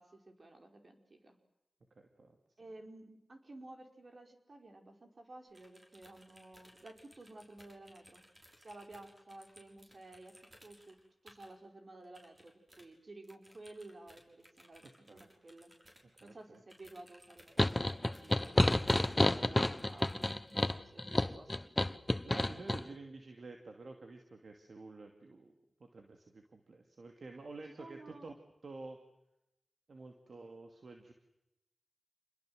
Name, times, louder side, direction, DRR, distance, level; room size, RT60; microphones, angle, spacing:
voice 1, 0.0-1.4 2.6-8.2 8.6-10.4 10.6-11.0 11.2-15.7 16.2-18.8 19.3-20.1 20.7-21.7 27.6-28.3, right 2 dB, 55° right, 4 dB, 4.9 m, -53 dB
voice 2, 2.0-2.4 14.8-15.3 16.2-16.6 22.2-25.5 25.8-28.3 28.6-29.0 29.9-31.1, right 3 dB, 70° right, 4 dB, 2.6 m, -50 dB
sound 1, 5.5-11.5 12.0-12.9 13.2-19.5 19.8-20.7, equal, 25° right, 6.7 m, -61 dB
sound 2, 17.6-22.8, left 1 dB, 25° left, 1.2 m, -30 dB
28.5 x 21.0 x 7.8 m, 0.90 s
cardioid pair, 45°, 0 cm